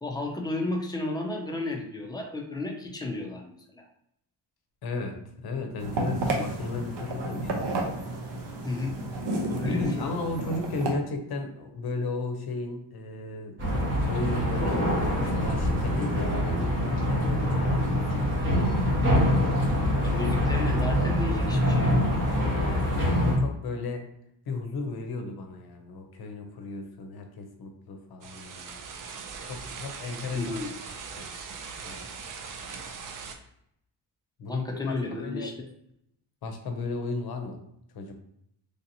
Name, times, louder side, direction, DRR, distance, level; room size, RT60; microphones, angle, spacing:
voice 1, 0.0-3.8 8.6-9.0 9.5-10.2 20.0-22.0 30.3-30.7 34.5-35.7, left 2 dB, 10° left, 0 dB, 0.4 m, -33 dB
voice 2, 4.8-7.7 9.6-13.6 14.1-18.3 22.6-24.1 24.5-28.8 29.4-31.3 31.8-32.0 34.4-35.5 36.4-37.6 37.9-38.1, left 3 dB, 60° left, 5 dB, 0.7 m, -35 dB
sound 1, 5.8-10.9, right 2 dB, 70° right, 0.8 m, -31 dB
sound 2, 13.6-23.4, equal, 25° right, 1.1 m, -25 dB
sound 3, 28.2-33.4, right 5 dB, 50° right, 0.5 m, -40 dB
3.2 x 2.8 x 2.7 m, 0.75 s
cardioid pair, 140°, 43 cm